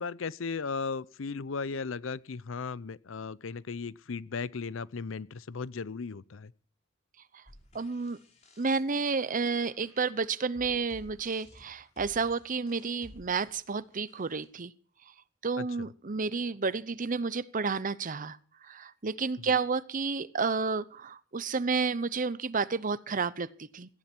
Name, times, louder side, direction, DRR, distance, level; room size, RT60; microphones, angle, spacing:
voice 1, 0.0-6.5 15.6-15.7, left 4 dB, 80° left, 0.6 m, -36 dB
sound 1, 7.4-14.4, left 1 dB, 35° left, 4.3 m, -56 dB
voice 2, 7.7-8.2 8.6-14.7 15.4-18.4 18.6-24.0, right 4 dB, 45° right, 0.8 m, -31 dB
17.5 x 15.0 x 4.5 m
head